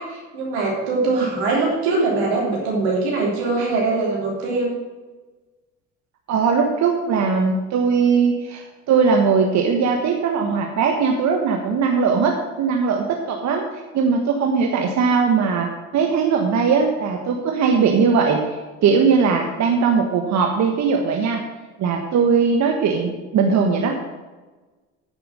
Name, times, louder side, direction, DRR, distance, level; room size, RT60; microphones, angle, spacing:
voice 1, 0.0-4.8, right 3 dB, 90° right, -2 dB, 3.4 m, -22 dB
voice 2, 6.3-15.7 15.9-18.4 18.8-21.4 21.8-24.0, right 5 dB, 60° right, 3 dB, 1.3 m, -19 dB
9.6 x 6.9 x 6.3 m, 1.3 s
supercardioid pair, 70°, 32 cm